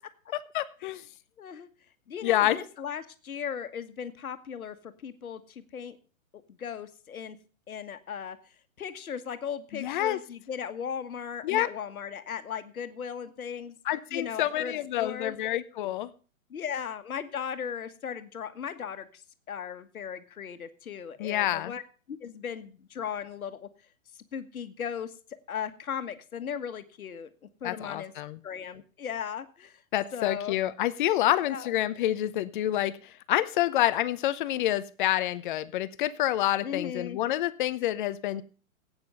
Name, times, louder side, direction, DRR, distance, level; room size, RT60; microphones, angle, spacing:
voice 1, 0.5-1.0 2.2-2.6 9.7-10.2 11.4-11.7 13.9-16.1 21.2-21.7 27.6-28.4 29.9-38.4, left 13 dB, 35° left, 15 dB, 0.7 m, -28 dB
voice 2, 1.4-1.7 2.1-6.0 6.3-7.4 7.7-8.4 8.8-13.7 14.1-15.4 16.5-19.2 19.5-21.8 22.1-23.7 24.1-25.1 25.5-27.3 27.6-28.1 28.4-29.8 30.1-30.6 31.3-31.7 36.6-37.2, left 7 dB, 80° left, 10 dB, 1.5 m, -37 dB
14.0 x 8.9 x 5.4 m, 0.38 s
hypercardioid pair, 135°, 42 cm